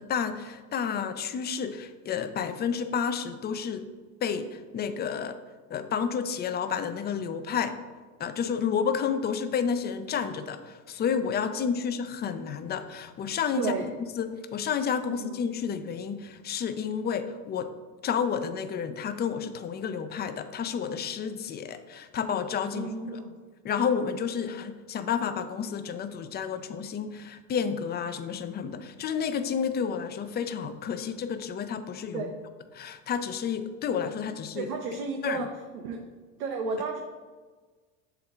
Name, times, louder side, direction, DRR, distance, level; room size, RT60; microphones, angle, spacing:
voice 1, 0.0-3.9 4.2-5.4 5.7-7.8 8.2-17.7 18.0-23.2 23.6-32.3 32.7-34.7 35.2-35.5, left 7 dB, 25° left, 10 dB, 0.3 m, -30 dB
voice 2, 13.6-13.9 15.1-15.4 22.7-23.3 32.1-32.4 34.5-35.5 35.7-36.0 36.4-37.0, right 4 dB, 85° right, 2 dB, 0.8 m, -32 dB
6.8 x 4.5 x 3.6 m, 1.4 s
supercardioid pair, 95°, 43 cm